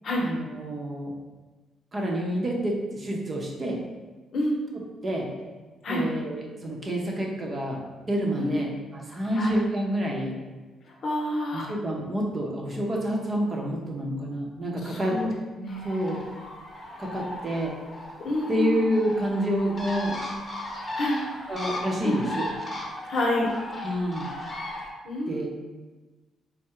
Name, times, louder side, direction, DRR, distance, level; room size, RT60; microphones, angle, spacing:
voice 1, 0.2-1.1 1.9-3.8 5.0-5.3 5.9-7.8 8.1-10.3 11.5-15.2 15.8-16.2 17.0-17.7 18.5-20.1 21.5-22.4 23.8-24.3 25.3-25.5, equal, 35° right, -1 dB, 0.8 m, -28 dB
voice 2, 8.4-8.7 9.3-9.5 10.9-11.7 14.8-15.3 15.6-16.2 18.2-18.8 21.0-21.2 22.0-22.2 23.1-23.5 25.0-25.5, left 1 dB, 55° left, -1 dB, 0.8 m, -28 dB
Bird, 15.7-24.9, left 1 dB, 30° left, 0.8 m, -36 dB
3.6 x 2.1 x 4.3 m, 1.2 s
cardioid pair, 90°, 0 cm